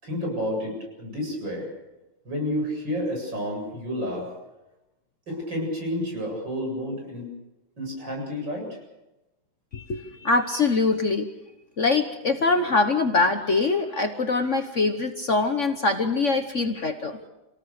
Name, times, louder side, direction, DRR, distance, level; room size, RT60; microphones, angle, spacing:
voice 1, 0.0-1.7 2.3-4.3 5.3-7.3 7.8-8.8, equal, 70° right, 0 dB, 8.6 m, -30 dB
voice 2, 9.7-11.3 11.8-17.3, left 3 dB, 45° left, 6 dB, 1.3 m, -23 dB
27.0 x 19.0 x 6.7 m, 1.0 s
omnidirectional pair, 2.1 m